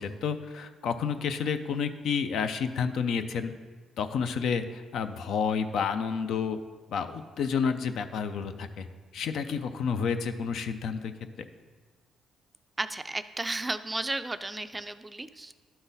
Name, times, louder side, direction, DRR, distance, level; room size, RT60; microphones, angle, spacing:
voice 1, 0.0-3.5 4.0-6.6 6.9-8.9 9.1-11.1, left 6 dB, 75° left, 9 dB, 0.4 m, -30 dB
voice 2, 12.8-15.5, right 2 dB, 15° right, 11 dB, 0.3 m, -33 dB
11.5 x 3.9 x 4.0 m, 1.5 s
cardioid pair, 90°, 0 cm